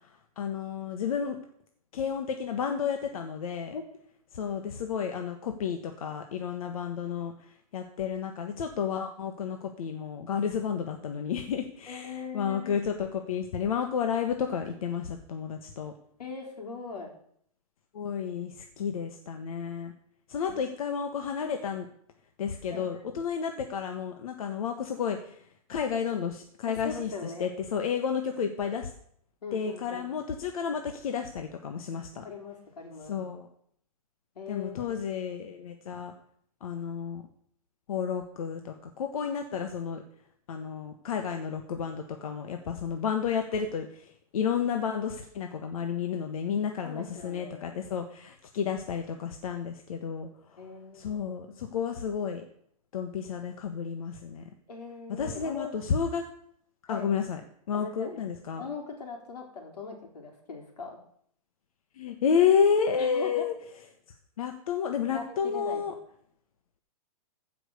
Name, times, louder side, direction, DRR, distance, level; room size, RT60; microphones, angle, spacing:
voice 1, 0.4-1.4 1.9-3.7 4.3-7.3 7.7-15.9 17.9-19.9 20.3-21.9 22.4-25.3 25.7-28.9 29.5-32.2 33.1-33.5 34.5-36.1 36.6-37.2 37.9-40.0 40.5-50.3 50.9-52.4 52.9-54.4 55.2-56.2 56.9-57.4 57.7-58.6 62.0-63.5 64.4-65.9, left 7 dB, 65° left, 5 dB, 1.4 m, -31 dB
voice 2, 11.9-12.8 16.2-17.1 20.5-20.6 22.7-23.0 26.7-27.5 29.4-30.2 32.2-33.2 34.3-34.9 46.8-47.8 50.6-51.8 54.7-55.7 56.9-57.1 57.7-58.2 58.6-61.0 63.0-63.4 65.1-65.8, left 5 dB, 90° left, 2 dB, 4.4 m, -40 dB
15.0 x 6.0 x 6.6 m, 0.66 s
hypercardioid pair, 160°, 20 cm